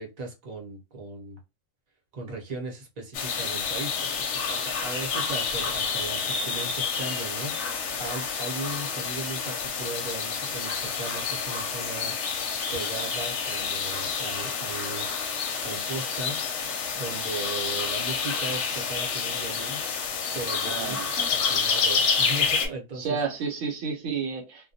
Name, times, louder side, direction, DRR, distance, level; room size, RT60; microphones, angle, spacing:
voice 1, 0.0-1.4 2.1-12.4 12.7-15.1 15.6-16.4 16.9-19.8 20.3-21.0 21.3-23.2, right 3 dB, 40° right, 0.7 m, -37 dB
sound 1, 3.1-22.7, left 6 dB, 70° left, 0.8 m, -29 dB
voice 2, 20.7-21.3 22.9-24.7, right 5 dB, 80° right, 1.1 m, -31 dB
2.2 x 2.2 x 2.6 m
omnidirectional pair, 1.4 m